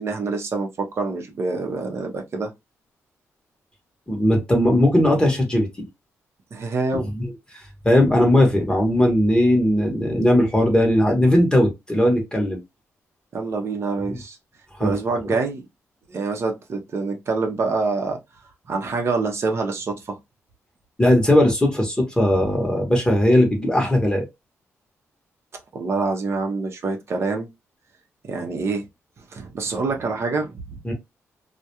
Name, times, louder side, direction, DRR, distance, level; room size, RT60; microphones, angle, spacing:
voice 1, 0.0-2.5 6.5-7.1 13.3-14.4 14.8-15.6 16.1-18.2 18.7-20.2 25.7-27.5 28.3-28.9 29.3-30.8, right 3 dB, 55° right, 0.6 m, -26 dB
voice 2, 4.1-5.7 7.2-7.3 7.8-12.6 14.1-14.2 14.8-14.9 21.0-24.3 30.8-30.9, left 1 dB, 15° left, 0.9 m, -18 dB
2.3 x 2.1 x 2.8 m
cardioid pair, 90°, 5 cm